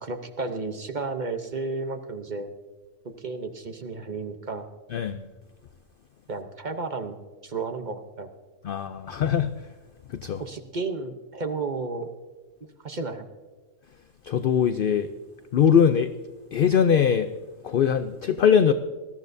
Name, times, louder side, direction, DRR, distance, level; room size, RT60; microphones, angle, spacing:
voice 1, 0.0-2.5 3.0-4.7 6.3-7.2 7.4-8.3 10.4-12.1 12.8-13.3, right 3 dB, 40° right, 6 dB, 0.9 m, -32 dB
voice 2, 4.9-5.2 8.6-9.5 10.2-10.4 14.2-15.1 15.5-16.1 16.5-17.3 17.6-18.7, left 7 dB, 60° left, 10 dB, 0.6 m, -21 dB
20.5 x 13.5 x 2.7 m, 1.3 s
omnidirectional pair, 1.3 m